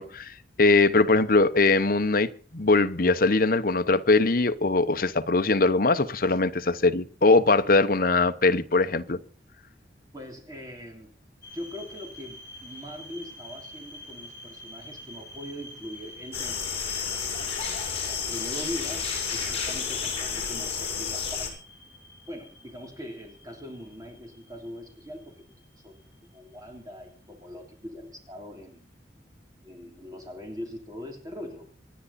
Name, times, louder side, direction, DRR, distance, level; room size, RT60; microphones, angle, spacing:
voice 1, 0.0-9.2, left 3 dB, 50° left, 0.9 m, -21 dB
voice 2, 10.1-11.1 11.5-16.7 18.1-21.5 22.3-25.4 25.8-25.9 26.2-28.9 29.6-31.7, equal, 20° right, 3.1 m, -41 dB
sound 1, 11.4-26.3, left 1 dB, 15° left, 7.4 m, -47 dB
sound 2, 16.3-21.5, left 6 dB, 35° left, 6.6 m, -31 dB
27.5 x 10.0 x 4.2 m
head